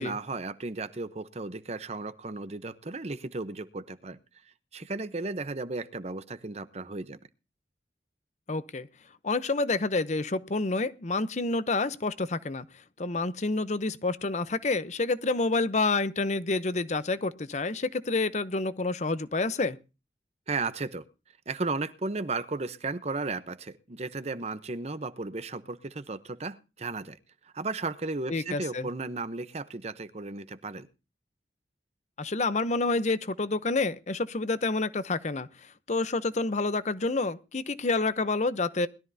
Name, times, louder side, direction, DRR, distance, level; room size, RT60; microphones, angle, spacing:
voice 1, 0.0-4.2 4.7-7.2 20.5-21.0 21.5-27.2 27.5-30.9, right 3 dB, 40° right, 0.8 m, -34 dB
voice 2, 8.5-8.9 9.2-12.6 13.0-19.8 28.3-28.9 32.2-35.5 35.9-38.9, left 3 dB, 40° left, 0.7 m, -28 dB
20.5 x 13.0 x 2.7 m
head